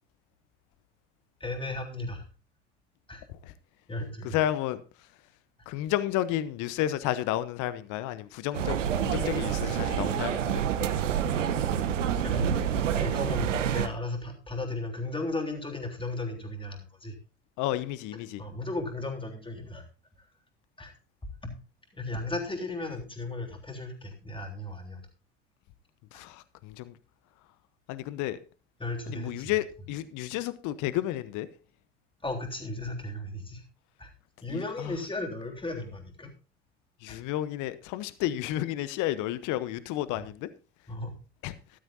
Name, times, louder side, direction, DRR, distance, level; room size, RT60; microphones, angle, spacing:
voice 1, 1.4-2.2 3.1-3.2 3.9-4.4 12.2-12.7 12.9-17.2 18.4-19.8 20.8-20.9 21.4-21.6 21.9-25.0 28.8-29.5 32.2-33.6 34.0-34.1 34.4-36.3 37.1-37.2 40.1-40.3 40.9-41.1, left 2 dB, 15° left, 3.4 m, -35 dB
voice 2, 4.3-4.8 5.7-10.6 17.6-18.4 26.1-26.4 26.6-26.9 27.9-28.4 29.1-31.5 34.5-34.9 37.0-40.5 41.4-41.5, left 13 dB, 55° left, 1.0 m, -31 dB
sound 1, 8.5-13.9, right 8 dB, 85° right, 1.0 m, -27 dB
14.0 x 12.5 x 2.7 m
hypercardioid pair, 70°, 36 cm